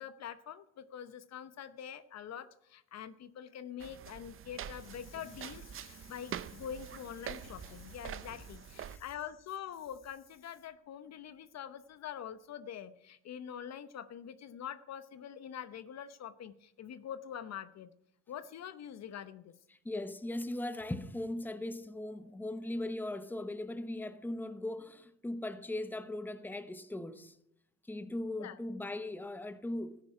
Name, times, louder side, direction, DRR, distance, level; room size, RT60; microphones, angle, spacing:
voice 1, 0.0-17.9 18.3-19.5 28.4-28.6, left 9 dB, 50° left, 0.9 m, -45 dB
sound 1, 3.8-9.0, right 9 dB, 35° right, 0.6 m, -45 dB
sound 2, 7.4-10.7 11.2-11.3, right 1 dB, 85° right, 5.1 m, -58 dB
voice 2, 19.8-27.4 27.9-30.0, left 1 dB, 5° left, 0.9 m, -39 dB
14.0 x 10.5 x 4.8 m
supercardioid pair, 85°, 35 cm